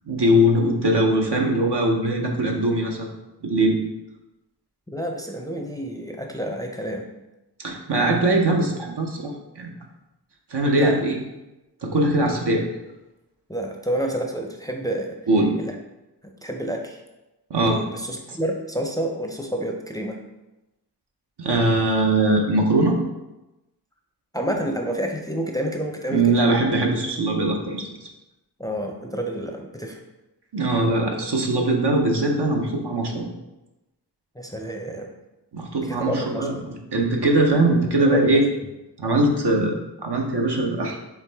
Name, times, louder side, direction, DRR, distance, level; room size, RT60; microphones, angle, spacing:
voice 1, 0.1-3.1 3.4-3.8 7.6-9.7 10.5-11.2 11.8-12.6 15.3-15.6 17.5-17.8 21.4-23.0 26.1-28.1 30.5-33.3 35.5-36.6 36.9-38.5 39.0-41.0, right 1 dB, 70° right, 1 dB, 0.8 m, -21 dB
voice 2, 4.9-7.1 10.8-11.0 13.5-15.2 15.6-15.7 16.2-17.0 17.6-20.2 24.3-26.4 28.6-30.0 34.3-35.1 35.8-36.6 38.0-38.4, right 1 dB, 10° left, 2 dB, 0.5 m, -29 dB
4.8 x 3.3 x 3.4 m, 0.99 s
wide cardioid pair, 45°, 42 cm